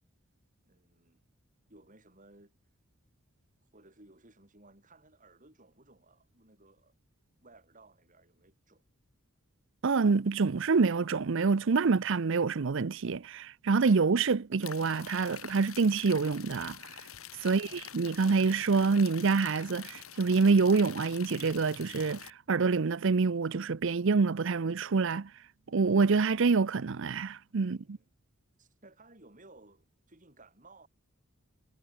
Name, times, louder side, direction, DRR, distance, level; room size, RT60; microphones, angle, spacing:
voice 1, 0.7-1.2 1.7-2.5 3.6-6.9 7.4-8.8 17.4-17.9 27.6-28.1 28.6-30.9, right 2 dB, 40° right, 5.4 m, -58 dB
voice 2, 9.8-16.8 17.4-17.7 17.9-25.3 25.7-28.0, right 4 dB, 60° right, 0.6 m, -26 dB
sound 1, 14.6-22.3, left 9 dB, 85° left, 4.5 m, -46 dB
head